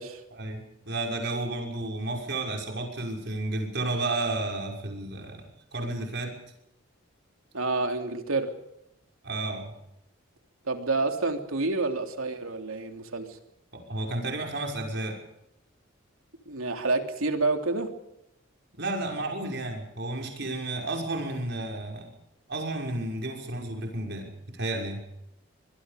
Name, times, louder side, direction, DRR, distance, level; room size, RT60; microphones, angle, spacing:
voice 1, 0.3-5.4 5.7-6.3 9.2-9.7 13.7-15.2 18.8-22.1 22.5-25.0, right 2 dB, 55° right, 1 dB, 6.0 m, -32 dB
voice 2, 7.5-8.6 10.7-13.4 16.5-17.9, right 3 dB, 85° right, 5 dB, 3.2 m, -28 dB
25.0 x 22.0 x 5.2 m, 0.82 s
head